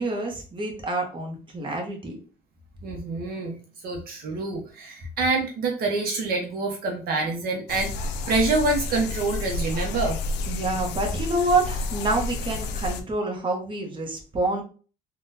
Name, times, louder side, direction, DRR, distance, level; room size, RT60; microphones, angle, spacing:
voice 1, 0.0-2.2 10.5-14.6, right 2 dB, 30° right, 1 dB, 0.9 m, -27 dB
voice 2, 2.8-10.2, right 3 dB, 60° right, 1 dB, 0.7 m, -27 dB
sound 1, 7.7-13.0, left 3 dB, 80° left, 0.4 m, -30 dB
3.6 x 2.2 x 2.7 m, 0.39 s
cardioid pair, 110°, 17 cm